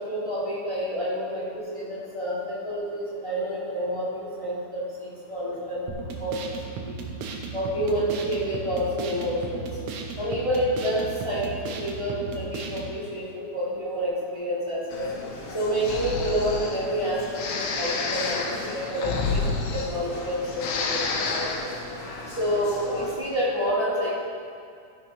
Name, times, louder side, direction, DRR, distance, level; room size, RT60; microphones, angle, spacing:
voice 1, 0.0-6.3 6.8-6.9 7.5-9.7 10.2-11.5 11.8-15.1 15.5-21.7 22.3-24.2, equal, 15° left, -6 dB, 1.1 m, -29 dB
sound 1, 5.9-12.9, right 4 dB, 80° right, 2.3 m, -35 dB
sound 2, 14.9-23.2, left 2 dB, 55° left, 2.1 m, -39 dB
Breathing, 15.8-16.8 17.3-20.3 20.5-21.7, left 4 dB, 90° left, 1.1 m, -29 dB
13.0 x 6.2 x 5.2 m, 2.3 s
omnidirectional pair, 3.5 m